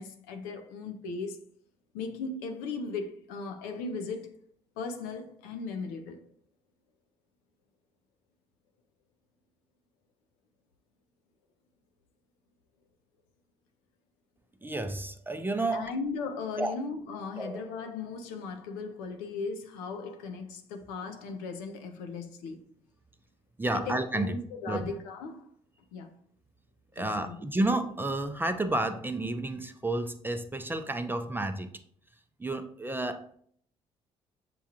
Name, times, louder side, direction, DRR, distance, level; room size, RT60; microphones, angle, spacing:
voice 1, 0.0-1.4 1.9-4.4 4.8-6.3 15.7-22.6 23.7-25.5 25.9-26.1 27.0-27.4, left 4 dB, 80° left, 0.5 m, -37 dB
voice 2, 14.6-15.9 16.6-16.8 17.4-17.6 23.6-24.4 24.7-24.9 27.0-31.7 32.4-33.3, right 2 dB, 15° right, 0.5 m, -31 dB
6.7 x 2.3 x 2.8 m
hypercardioid pair, 50°, 16 cm